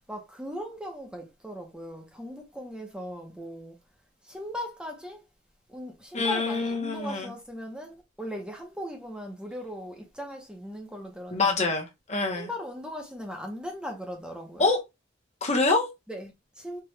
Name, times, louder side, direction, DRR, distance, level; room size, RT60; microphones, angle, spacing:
voice 1, 0.1-3.8 4.2-5.2 5.7-11.7 12.4-14.7 16.1-16.8, equal, 5° right, 0.8 m, -38 dB
voice 2, 6.1-7.3 11.3-12.5 14.6-14.8 15.4-15.9, left 3 dB, 35° left, 1.0 m, -25 dB
4.7 x 2.4 x 3.2 m
head